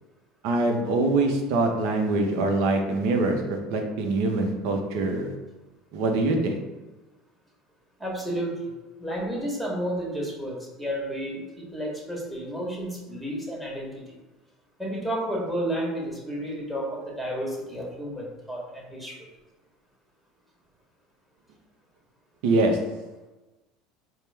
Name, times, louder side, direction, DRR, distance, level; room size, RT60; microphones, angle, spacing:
voice 1, 0.4-5.3 5.9-6.6 22.4-22.8, right 2 dB, 70° right, 3 dB, 0.6 m, -24 dB
voice 2, 8.0-8.7 9.0-14.0 14.8-19.2, equal, 5° right, -3 dB, 1.3 m, -31 dB
4.2 x 2.0 x 3.4 m, 1.1 s
hypercardioid pair, 80°, 0 cm